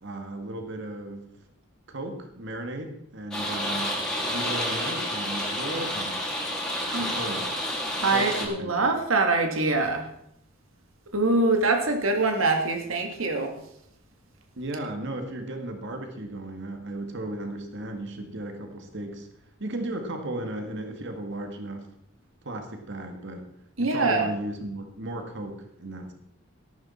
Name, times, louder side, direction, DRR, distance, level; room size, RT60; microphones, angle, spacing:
voice 1, 0.0-1.3 1.9-4.0 4.3-6.3 6.9-7.5 8.1-8.8 14.6-19.3 19.6-21.9 22.4-23.5 23.8-26.1, right 1 dB, 60° right, 5 dB, 1.8 m, -35 dB
sound 1, 3.3-8.5, left 1 dB, 5° left, 3.2 m, -30 dB
voice 2, 6.8-7.1 8.0-10.1 11.1-13.6 23.8-24.3, right 3 dB, 90° right, 4 dB, 1.9 m, -24 dB
13.5 x 12.0 x 4.3 m, 0.74 s
head